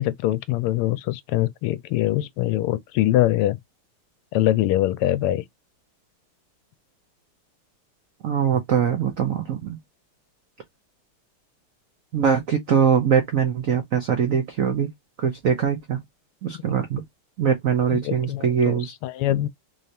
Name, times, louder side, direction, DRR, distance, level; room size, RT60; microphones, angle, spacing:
voice 1, 0.0-3.6 4.3-5.4 17.9-18.7 19.0-19.5, left 14 dB, 85° left, 1.5 m, -23 dB
voice 2, 8.2-9.8 12.1-14.9 15.2-16.0 16.4-17.0 17.4-18.9, right 7 dB, 85° right, 0.7 m, -22 dB
3.7 x 3.2 x 2.7 m
omnidirectional pair, 2.4 m